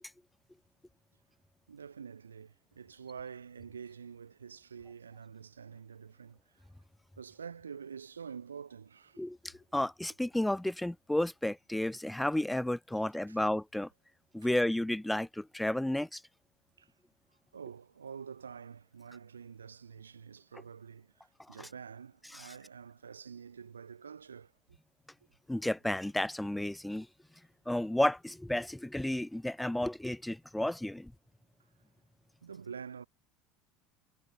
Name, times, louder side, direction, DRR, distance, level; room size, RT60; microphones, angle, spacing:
voice 1, 1.7-6.5 7.2-9.2 13.3-13.4 14.4-14.5 16.8-16.9 17.5-24.5 32.4-33.1, right 6 dB, 80° right, 0.8 m, -47 dB
voice 2, 9.2-13.9 14.3-16.2 22.3-22.5 25.5-27.1 27.7-31.1, left 1 dB, 5° left, 0.7 m, -32 dB
figure-of-eight pair, 70°, 0 cm